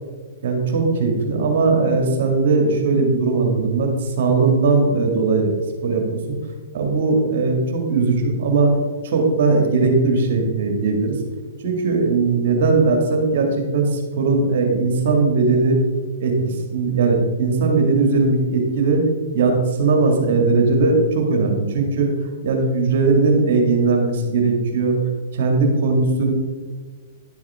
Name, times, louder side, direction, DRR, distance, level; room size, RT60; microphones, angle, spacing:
voice 1, 0.4-5.5 5.8-6.4 6.7-8.7 9.0-11.2 11.6-15.8 16.2-19.0 19.3-22.1 22.4-25.0 25.3-26.3, right 3 dB, 60° right, 2 dB, 2.1 m, -19 dB
11.5 x 7.1 x 3.6 m, 1.5 s
hypercardioid pair, 125°, 0 cm